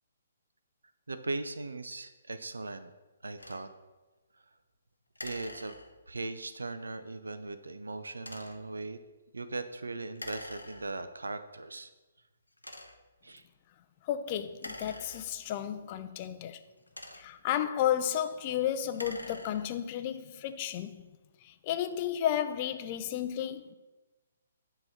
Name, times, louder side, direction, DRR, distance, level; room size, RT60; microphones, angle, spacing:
voice 1, 1.1-2.9 3.2-3.7 5.2-5.7 6.1-9.0 9.3-11.9 13.2-13.5, right 2 dB, 75° right, 0.4 m, -39 dB
sound 1, 3.4-3.7 5.2-6.2 8.2-8.7 10.2-11.2 11.8-11.9 12.6-13.2 14.5-15.7 16.6-17.5 18.8-19.9, left 1 dB, 85° left, 0.6 m, -46 dB
voice 2, 14.0-16.6 17.1-21.0 21.4-23.7, left 10 dB, 30° left, 0.4 m, -32 dB
7.5 x 2.9 x 5.7 m
figure-of-eight pair, 130°, 0 cm